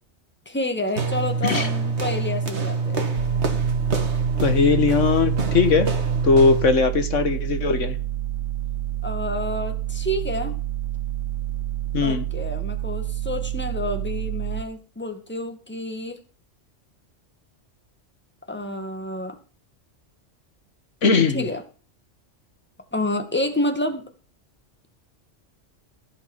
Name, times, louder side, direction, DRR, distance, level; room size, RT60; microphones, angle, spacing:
voice 1, 0.5-3.0 9.0-10.5 12.0-16.2 18.5-19.4 21.3-21.6 22.9-24.0, left 1 dB, 10° left, 5 dB, 1.9 m, -29 dB
sound 1, 1.0-6.8, right 4 dB, 65° right, 2.1 m, -25 dB
sound 2, 3.2-14.6, right 14 dB, 80° right, 1.3 m, -29 dB
voice 2, 4.4-5.9 6.2-8.0 11.9-12.2 21.0-21.5, left 4 dB, 85° left, 9 dB, 1.7 m, -19 dB
15.0 x 5.8 x 7.2 m, 0.36 s
omnidirectional pair, 1.3 m